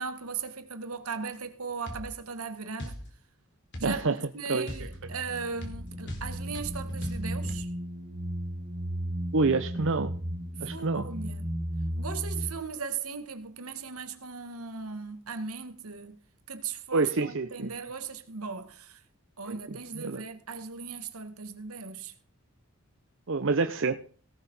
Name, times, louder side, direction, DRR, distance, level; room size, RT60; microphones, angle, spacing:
voice 1, 0.0-3.0 3.8-7.7 10.6-11.5 12.0-16.2 16.5-19.0 19.4-22.1, right 5 dB, 75° right, 1.8 m, -37 dB
sound 1, 1.9-2.1 2.8-3.0 3.7-4.0 4.7-7.6, equal, 55° left, 4.0 m, -39 dB
voice 2, 3.8-4.2 4.5-4.7 9.3-10.1 10.6-11.1 16.9-17.7 19.5-20.2 23.3-23.9, right 3 dB, 60° right, 0.8 m, -27 dB
sound 2, 4.9-12.5, equal, 35° right, 2.0 m, -35 dB
18.0 x 6.8 x 5.5 m
head